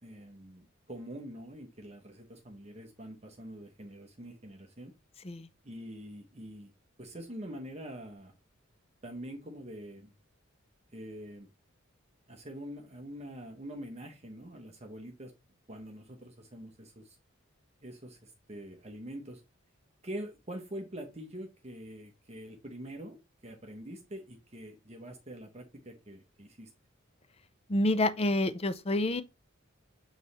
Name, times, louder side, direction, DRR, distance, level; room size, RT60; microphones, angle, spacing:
voice 1, 0.0-4.9 5.6-6.7 7.0-8.3 9.0-10.1 10.9-11.5 12.3-15.3 15.7-17.2 17.8-19.4 20.0-23.2 23.4-26.7, right 1 dB, 30° right, 1.0 m, -45 dB
voice 2, 27.7-29.2, left 1 dB, 30° left, 0.5 m, -28 dB
7.7 x 3.2 x 4.1 m
head